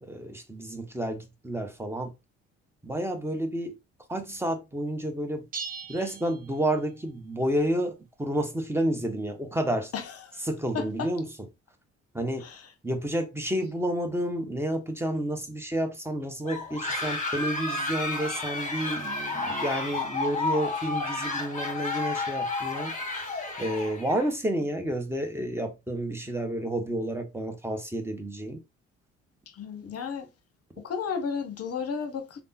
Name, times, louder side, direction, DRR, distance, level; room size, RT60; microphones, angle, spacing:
voice 1, 0.0-2.1 2.8-3.8 4.1-5.5 5.9-9.9 10.5-11.3 12.1-12.5 12.8-28.6, right 1 dB, 5° right, 0.9 m, -30 dB
sound 1, 5.5-7.1, right 5 dB, 25° right, 0.5 m, -40 dB
voice 2, 9.9-10.4 10.7-11.1 12.4-12.7 29.5-30.3 30.8-32.4, left 6 dB, 45° left, 0.8 m, -33 dB
sound 2, 16.4-24.3, left 3 dB, 20° left, 1.2 m, -31 dB
3.4 x 2.1 x 2.8 m
hypercardioid pair, 50°, 34 cm